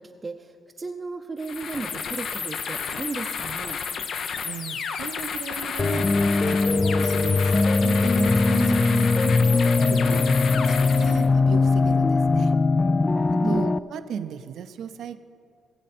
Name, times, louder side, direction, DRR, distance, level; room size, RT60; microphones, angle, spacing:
voice 1, 0.0-3.8 13.4-13.7, right 3 dB, 30° right, 3 dB, 0.6 m, -34 dB
sound 1, 1.4-11.3, left 6 dB, 65° left, 0.7 m, -31 dB
voice 2, 4.4-6.1 6.4-10.3 10.7-12.5 13.3-15.2, right 8 dB, 70° right, 10 dB, 0.6 m, -36 dB
sound 2, 5.8-13.8, left 3 dB, 25° left, 0.3 m, -20 dB
20.0 x 7.5 x 4.3 m, 2.3 s
cardioid pair, 90°, 0 cm